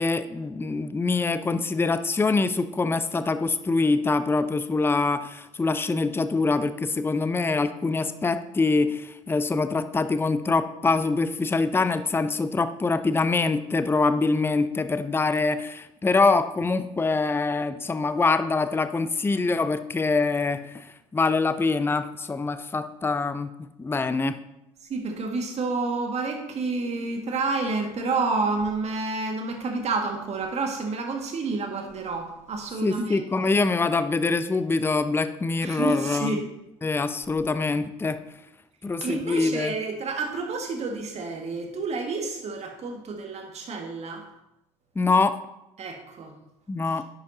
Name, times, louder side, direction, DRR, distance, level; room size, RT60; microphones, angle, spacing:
voice 1, 0.0-24.4 32.8-36.4 36.8-38.2 38.8-39.7 45.0-45.4 46.7-47.0, left 3 dB, 15° left, 12 dB, 0.6 m, -24 dB
voice 2, 24.9-33.5 35.6-36.4 39.0-44.2 45.8-46.3, right 3 dB, 45° right, 3 dB, 1.9 m, -29 dB
10.5 x 8.1 x 2.8 m, 0.91 s
hypercardioid pair, 55°, 16 cm